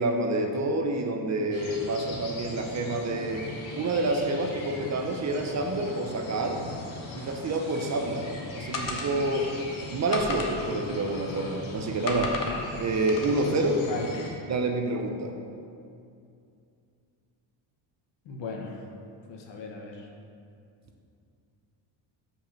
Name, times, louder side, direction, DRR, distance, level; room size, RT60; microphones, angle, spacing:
voice 1, 0.0-3.5 3.8-6.6 7.2-8.3 8.5-9.5 9.9-12.3 12.8-13.8 14.5-15.3, right 2 dB, 40° right, 3 dB, 0.6 m, -28 dB
Mountain Meadow Switzerland Birds Insects distant cowbells, 1.5-14.3, left 1 dB, 90° left, 1.6 m, -40 dB
sound 1, 8.7-9.5 10.1-11.6 12.1-12.6 13.1-13.5, left 3 dB, 45° left, 0.9 m, -35 dB
voice 2, 13.8-14.3 18.2-18.9 19.3-20.1, left 3 dB, 70° left, 1 dB, 1.1 m, -37 dB
5.2 x 4.9 x 5.8 m, 2.5 s
cardioid pair, 125°, 46 cm